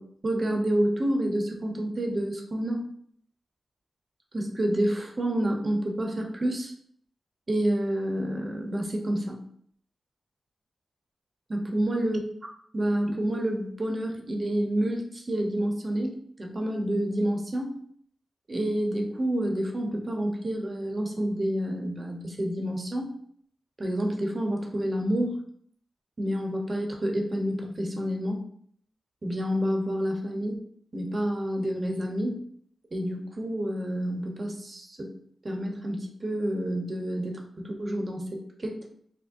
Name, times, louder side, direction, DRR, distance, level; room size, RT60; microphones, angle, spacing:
voice 1, 0.0-2.8 4.3-6.7 7.5-9.4 11.5-12.2 12.7-17.7 18.5-23.1 23.8-25.4 26.2-28.4 29.2-30.6 30.9-32.4 32.9-35.2 35.4-38.8, right 1 dB, 40° right, 2 dB, 0.8 m, -29 dB
6.0 x 2.1 x 2.6 m, 0.63 s
cardioid pair, 70°, 0 cm